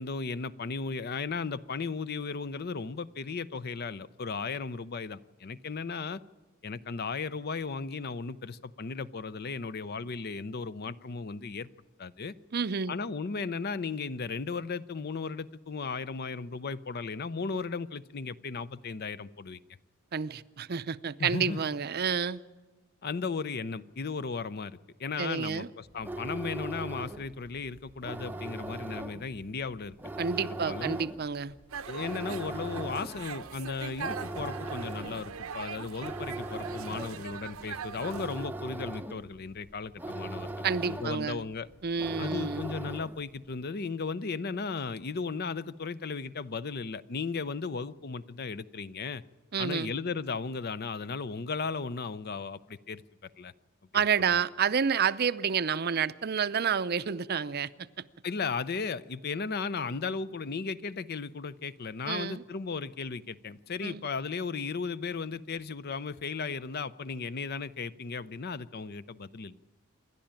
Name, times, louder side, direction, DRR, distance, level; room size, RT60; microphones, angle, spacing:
voice 1, 0.0-6.2 6.6-11.7 12.0-12.3 12.9-19.6 21.2-21.6 23.0-30.0 30.6-31.0 31.9-41.7 42.2-49.2 49.6-53.0 53.4-53.5 58.2-69.6, left 4 dB, 50° left, 0.6 m, -35 dB
voice 2, 12.5-12.9 20.1-22.4 25.2-25.7 30.2-31.6 40.6-41.4 41.8-42.7 49.5-49.9 53.9-57.9 62.1-62.4 63.8-64.1, right 6 dB, 50° right, 0.6 m, -29 dB
sound 1, 25.9-43.4, right 1 dB, 10° right, 0.7 m, -40 dB
sound 2, 31.7-38.5, right 6 dB, 90° right, 0.8 m, -41 dB
27.5 x 11.5 x 8.9 m
head